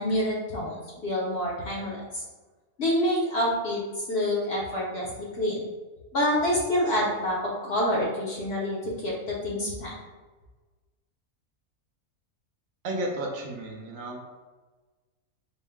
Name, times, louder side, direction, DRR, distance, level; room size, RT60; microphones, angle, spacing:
voice 1, 0.0-2.2 2.8-5.6 6.1-9.9, left 1 dB, 55° left, -4 dB, 0.8 m, -27 dB
voice 2, 12.8-14.2, right 1 dB, 70° right, 1 dB, 0.9 m, -32 dB
4.4 x 2.1 x 3.4 m, 1.3 s
omnidirectional pair, 1.5 m